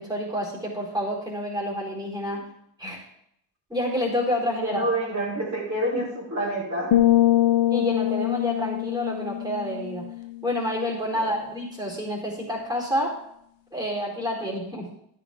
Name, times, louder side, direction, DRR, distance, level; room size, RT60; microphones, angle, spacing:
voice 1, 0.0-2.5 2.8-3.0 3.7-4.9 5.9-6.0 7.7-10.0 10.4-13.1 13.7-14.9, equal, 10° right, -3 dB, 4.2 m, -28 dB
voice 2, 4.6-7.0 11.1-11.4, right 1 dB, 35° right, -4 dB, 4.6 m, -28 dB
sound 1, 6.9-10.6, left 14 dB, 70° left, 1.0 m, -23 dB
13.5 x 11.0 x 3.7 m, 0.72 s
wide cardioid pair, 145°, 47 cm